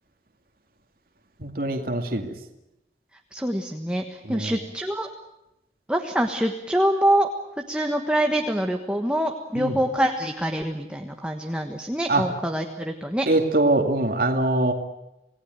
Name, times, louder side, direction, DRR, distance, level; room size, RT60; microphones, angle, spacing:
voice 1, 1.4-2.3 4.3-4.6 9.6-9.8 12.1-12.2 13.3-14.7, right 2 dB, 55° right, 3 dB, 2.4 m, -23 dB
voice 2, 3.3-5.1 5.9-7.3 7.7-13.3, right 1 dB, 5° right, 3 dB, 1.4 m, -25 dB
28.5 x 18.0 x 9.2 m, 0.90 s
head